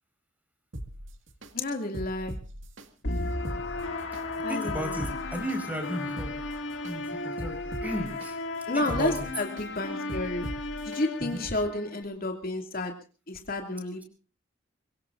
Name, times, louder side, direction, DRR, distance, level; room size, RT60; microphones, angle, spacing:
sound 1, 0.7-1.5 1.9-2.9 3.3-4.2 4.7-5.6 6.0-6.9 7.4-8.3 8.7-9.7 10.1-11.0 11.5-11.6, equal, 85° right, 2.0 m, -39 dB
voice 1, 1.5-2.4 4.4-4.8 8.7-10.5 10.8-12.9 13.3-14.0, left 2 dB, 50° left, 3 dB, 2.5 m, -31 dB
sound 2, 3.0-12.0, left 2 dB, 70° left, 2.3 m, -35 dB
voice 2, 4.5-6.4 6.8-8.4 8.7-9.3 11.2-11.5, equal, 10° right, 6 dB, 5.0 m, -35 dB
24.0 x 23.5 x 2.6 m, 0.35 s
head